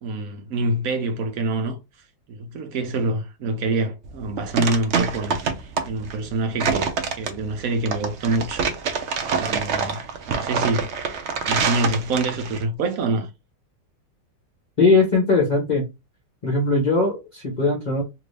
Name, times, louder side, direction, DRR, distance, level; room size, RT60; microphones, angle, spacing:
voice 1, 0.0-1.8 2.3-6.9 7.1-8.7 9.4-10.0 10.3-11.1 11.5-13.3, right 2 dB, 60° right, 1.0 m, -26 dB
sound 1, 4.0-12.6, right 5 dB, 90° right, 0.6 m, -26 dB
voice 2, 14.8-15.9 16.4-18.0, left 3 dB, 35° left, 0.8 m, -19 dB
3.0 x 2.7 x 3.2 m
omnidirectional pair, 2.0 m